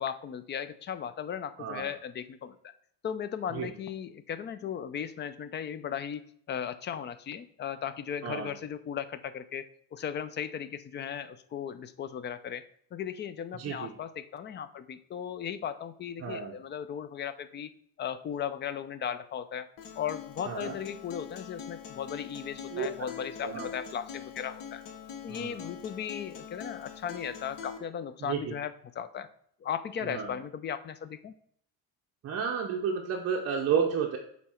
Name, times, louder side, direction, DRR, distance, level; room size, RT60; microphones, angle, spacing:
voice 1, 0.0-2.6 3.0-6.2 6.5-9.7 9.9-12.6 12.9-17.7 18.0-19.7 20.0-24.8 25.2-29.3 29.6-31.3, left 8 dB, 30° left, 13 dB, 0.4 m, -36 dB
voice 2, 1.6-1.9 3.5-3.7 8.2-8.5 13.5-13.9 16.2-16.6 20.5-20.7 22.7-22.9 23.4-23.7 25.3-25.7 28.2-28.5 30.0-30.3 32.2-34.2, right 6 dB, 40° right, 1 dB, 0.7 m, -31 dB
Acoustic guitar, 19.8-27.8, left 8 dB, 65° left, 1.1 m, -44 dB
6.7 x 4.1 x 4.3 m, 0.65 s
cardioid pair, 150°, 36 cm